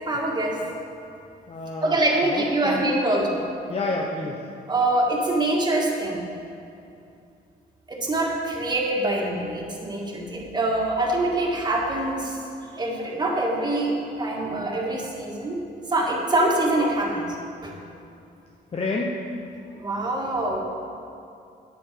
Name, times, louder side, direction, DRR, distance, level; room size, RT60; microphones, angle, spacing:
voice 1, 0.1-0.6 1.8-3.4 4.7-6.2 7.9-12.4 12.8-15.6 15.9-17.2 17.6-17.7 19.8-20.6, right 2 dB, 25° right, -1 dB, 1.7 m, -24 dB
voice 2, 1.5-2.0 2.2-2.9 3.7-4.4 18.7-19.1, left 3 dB, 35° left, -2 dB, 0.9 m, -29 dB
10.5 x 8.7 x 5.0 m, 2.6 s
cardioid pair, 130°, 18 cm